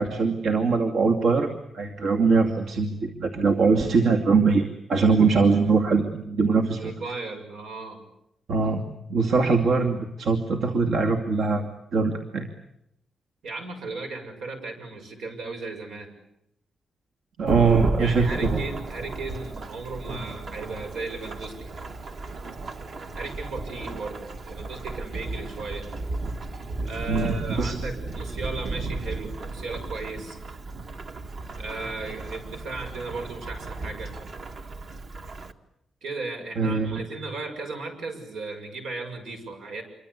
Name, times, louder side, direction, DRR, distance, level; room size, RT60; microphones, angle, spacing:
voice 1, 0.0-6.9 8.5-8.8 9.1-12.5 17.4-18.5 27.1-27.9 36.6-37.0, right 4 dB, 70° right, 2 dB, 2.5 m, -22 dB
voice 2, 6.8-8.0 13.4-16.1 18.0-21.7 23.2-25.9 26.8-30.4 31.6-34.1 36.0-39.8, right 3 dB, 85° right, 5 dB, 7.0 m, -36 dB
Thunderstorm / Rain, 17.5-35.5, right 3 dB, 45° right, 1.7 m, -34 dB
27.0 x 24.5 x 8.4 m, 0.82 s
wide cardioid pair, 165°, 0 cm